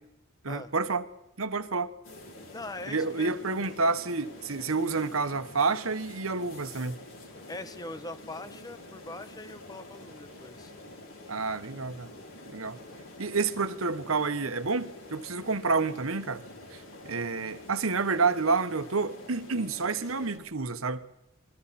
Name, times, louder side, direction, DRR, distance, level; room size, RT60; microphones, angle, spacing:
voice 1, 0.4-1.1 1.4-1.9 2.9-7.0 11.3-12.1 12.5-12.8 13.2-16.4 16.7-21.0, right 4 dB, 85° right, 1.3 m, -29 dB
sound 1, 2.0-20.4, left 1 dB, 75° left, 5.6 m, -47 dB
voice 2, 2.5-3.4 7.5-10.7, left 2 dB, 20° left, 1.0 m, -42 dB
27.5 x 22.0 x 4.3 m
head